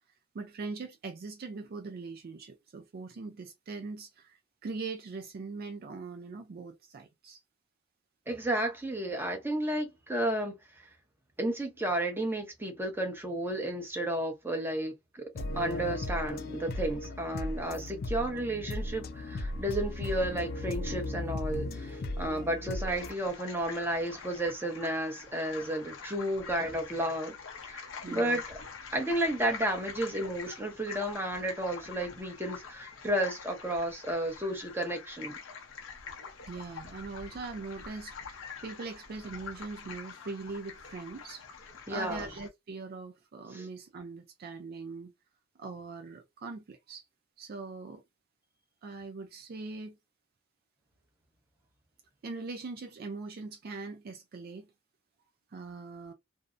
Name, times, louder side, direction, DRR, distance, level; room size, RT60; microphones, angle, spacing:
voice 1, 0.3-7.4 28.0-28.4 36.5-41.4 41.9-45.1 45.6-47.0 47.4-48.0 48.8-50.0 52.2-54.7 55.5-56.1, right 4 dB, 50° right, 0.4 m, -41 dB
voice 2, 8.3-10.9 11.4-15.2 15.5-27.3 27.6-27.9 28.1-28.6 28.9-35.4 41.9-42.3 43.5-43.7, right 1 dB, 10° right, 0.7 m, -32 dB
sound 1, 15.4-23.1, left 2 dB, 50° left, 0.3 m, -36 dB
sound 2, 22.9-42.5, left 5 dB, 85° left, 0.7 m, -45 dB
2.6 x 2.0 x 2.4 m
head